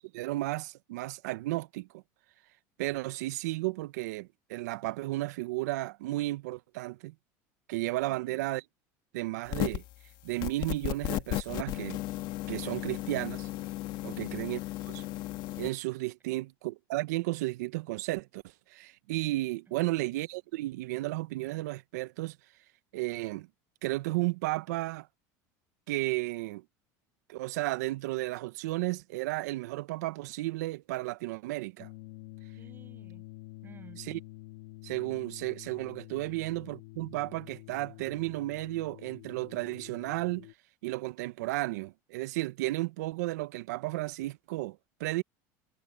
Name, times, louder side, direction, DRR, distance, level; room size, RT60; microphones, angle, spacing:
voice 1, 0.1-2.0 2.8-7.1 7.7-8.6 9.1-9.8 10.2-12.0 12.5-13.5 14.0-14.6 14.9-15.0 15.6-18.4 18.7-22.4 22.9-23.5 23.8-25.1 25.9-26.6 27.3-31.9 34.0-34.2 34.8-40.5 40.8-45.2, right 19 dB, 90° right, 0.7 m, -33 dB
voice 2, 8.1-8.5 14.1-14.4 16.3-16.4 19.7-20.0 32.6-33.3 33.6-34.0 36.3-36.4, right 5 dB, 25° right, 6.1 m, -55 dB
sound 1, 9.5-9.9 10.4-15.7, left 16 dB, 60° left, 2.0 m, -35 dB
sound 2, 31.8-40.5, left 19 dB, 80° left, 2.3 m, -48 dB
supercardioid pair, 120°, 9 cm